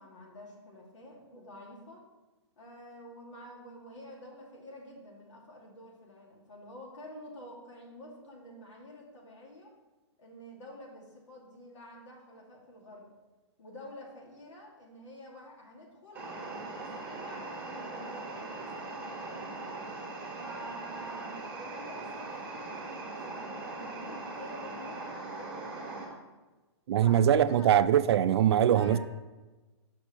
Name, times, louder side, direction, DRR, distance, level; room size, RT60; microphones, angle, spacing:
voice 1, 0.0-2.0 2.6-9.7 10.2-13.1 13.6-19.7 20.3-26.2 27.0-27.7 28.6-29.0, left 1 dB, 85° left, 2.3 m, -49 dB
sound 1, 16.1-26.0, right 3 dB, 10° right, 1.6 m, -40 dB
voice 2, 26.9-29.0, right 10 dB, 60° right, 0.4 m, -22 dB
6.0 x 4.3 x 6.2 m
hypercardioid pair, 160°, 15 cm